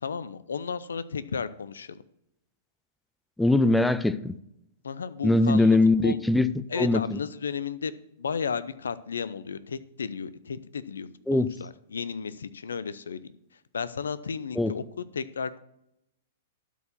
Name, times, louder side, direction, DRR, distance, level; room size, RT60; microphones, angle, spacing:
voice 1, 0.0-2.0 4.8-5.8 6.0-6.2 6.7-7.9 8.2-13.2 13.7-15.6, left 6 dB, 75° left, 0.6 m, -33 dB
voice 2, 3.4-4.3 5.2-6.5 6.8-7.2 11.3-11.5 14.6-14.7, left 2 dB, 5° left, 0.5 m, -21 dB
12.0 x 4.6 x 6.9 m
figure-of-eight pair, 105°, 0 cm